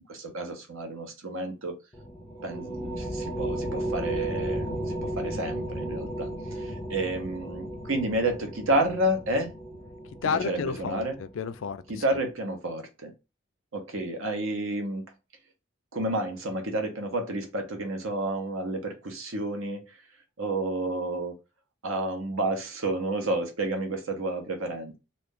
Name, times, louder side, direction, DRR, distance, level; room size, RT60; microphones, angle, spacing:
voice 1, 0.1-1.7 2.4-9.5 10.4-11.2 11.9-13.1 13.7-15.0 15.9-20.0 20.4-21.3 21.8-24.9, right 1 dB, 75° right, 0.9 m, -30 dB
sound 1, 1.9-11.7, right 1 dB, 15° left, 0.5 m, -35 dB
voice 2, 10.2-12.0, left 6 dB, 70° left, 0.4 m, -31 dB
2.6 x 2.4 x 3.6 m
head